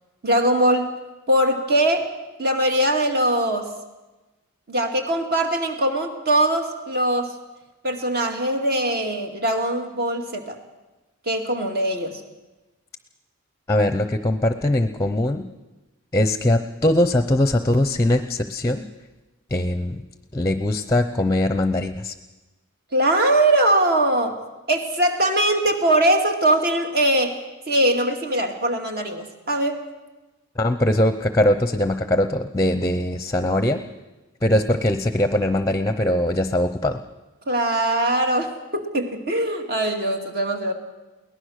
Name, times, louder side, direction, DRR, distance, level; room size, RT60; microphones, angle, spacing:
voice 1, 0.2-0.9 1.3-2.1 2.4-3.7 4.7-7.3 7.8-10.6 11.3-12.2 22.9-24.4 24.7-27.4 27.7-29.8 37.5-40.7, right 1 dB, 45° right, 4 dB, 2.4 m, -21 dB
voice 2, 13.7-15.5 16.1-18.8 19.5-20.0 20.3-22.1 30.6-33.8 34.4-37.0, left 1 dB, 15° left, 9 dB, 0.7 m, -21 dB
22.5 x 18.5 x 6.5 m, 1.1 s
head